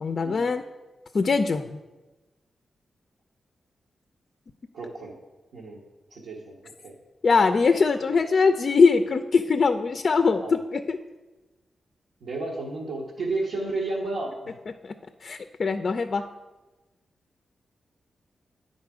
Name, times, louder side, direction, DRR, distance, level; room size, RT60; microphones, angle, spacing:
voice 1, 0.0-0.6 1.1-1.8 7.2-11.0 14.8-14.9 15.2-16.2, left 4 dB, 60° left, 8 dB, 0.3 m, -22 dB
voice 2, 4.7-5.1 5.5-5.8 6.1-6.9 8.1-8.2 10.4-10.6 12.2-14.5, right 2 dB, 85° right, -5 dB, 1.0 m, -32 dB
9.5 x 4.0 x 4.8 m, 1.1 s
supercardioid pair, 45°, 0 cm